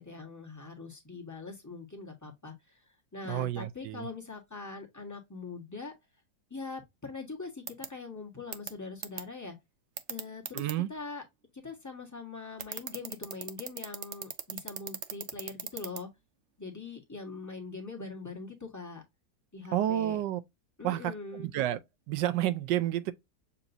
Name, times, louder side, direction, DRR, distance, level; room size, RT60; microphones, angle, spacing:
voice 1, 0.0-5.9 6.5-9.6 10.1-10.6 10.9-11.2 11.6-16.1 16.6-19.0 19.5-20.2 20.8-21.5, left 4 dB, 10° left, 1.3 m, -42 dB
voice 2, 3.2-4.1 10.5-10.9 19.7-20.4 20.8-21.8 22.1-23.1, right 13 dB, 90° right, 1.3 m, -30 dB
sound 1, 7.7-7.9 8.5-8.7 9.0-9.2 10.0-10.7 12.6-16.0, right 8 dB, 60° right, 0.7 m, -36 dB
6.9 x 2.9 x 2.6 m
omnidirectional pair, 1.9 m